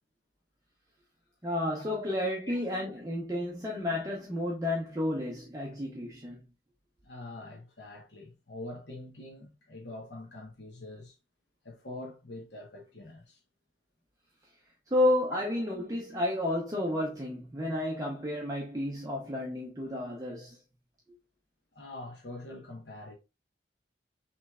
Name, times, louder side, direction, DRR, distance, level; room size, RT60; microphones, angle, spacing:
voice 1, 1.4-6.4 14.9-20.6, left 1 dB, 20° right, 0.7 m, -31 dB
voice 2, 7.0-11.2 11.6-13.4 21.7-23.1, left 2 dB, 75° left, 1.1 m, -44 dB
6.0 x 3.2 x 2.3 m
head